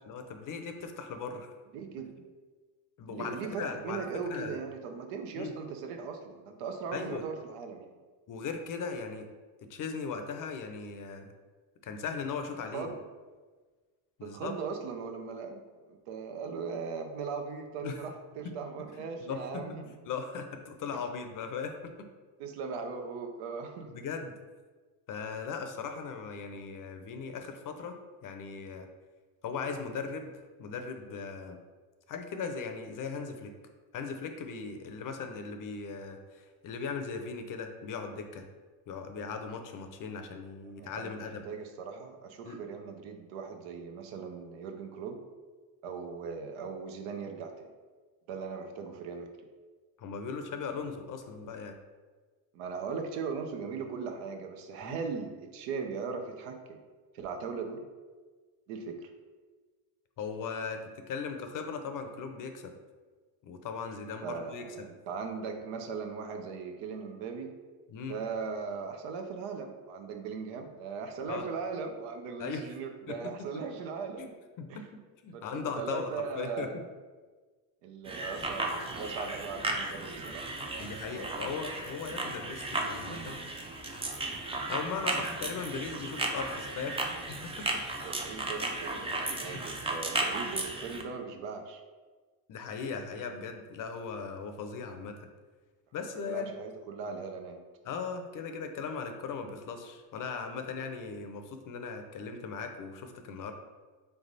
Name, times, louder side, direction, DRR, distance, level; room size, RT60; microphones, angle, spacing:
voice 1, 0.0-1.5 3.0-4.6 5.4-5.5 6.9-7.2 8.3-9.3 9.7-11.3 11.8-12.9 14.2-14.5 17.8-18.0 18.4-18.5 18.9-19.6 20.0-22.1 23.9-24.3 25.1-28.9 29.4-30.3 30.6-31.6 32.1-33.5 33.9-38.4 38.9-41.4 42.4-42.6 50.0-51.8 54.8-55.0 60.2-62.7 63.4-64.9 67.9-68.2 71.3-71.4 72.4-72.6 73.1-73.3 74.2-74.3 74.6-74.9 75.2-76.7 80.8-83.4 84.7-87.7 89.3-89.7 92.5-95.3 95.9-96.5 97.8-103.5, left 5 dB, 45° left, 6 dB, 0.6 m, -38 dB
voice 2, 1.7-2.1 3.1-7.9 12.7-13.0 14.2-20.0 22.4-23.9 40.6-45.2 45.8-47.7 48.3-49.3 52.5-56.8 57.1-57.8 58.7-59.1 64.2-67.5 68.1-74.3 74.7-74.8 75.3-76.8 77.8-81.5 88.0-91.8 96.1-97.6, right 5 dB, 85° right, 5 dB, 0.8 m, -39 dB
sound 1, 78.1-91.0, right 2 dB, 15° right, 0.4 m, -35 dB
3.5 x 3.4 x 4.0 m, 1.4 s
cardioid pair, 105°, 46 cm